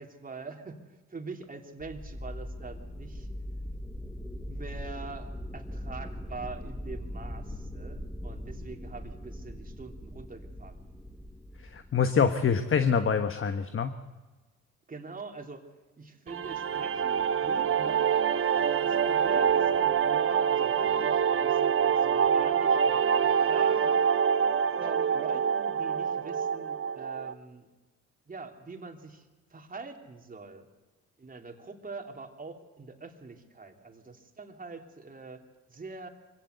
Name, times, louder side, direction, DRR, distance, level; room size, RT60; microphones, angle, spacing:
voice 1, 0.0-3.3 4.5-10.8 14.9-15.6 16.0-18.1 18.8-24.1 24.8-27.7 28.3-30.7 31.2-35.4 35.7-36.1, right 4 dB, 30° right, 3 dB, 3.2 m, -44 dB
sound 1, 1.8-12.4, equal, ahead, 1.9 m, -40 dB
voice 2, 11.7-13.9, left 6 dB, 45° left, 8 dB, 1.3 m, -25 dB
sound 2, 16.3-27.3, right 7 dB, 45° right, 1.0 m, -26 dB
24.0 x 17.0 x 8.2 m, 1.2 s
cardioid pair, 90°, 30 cm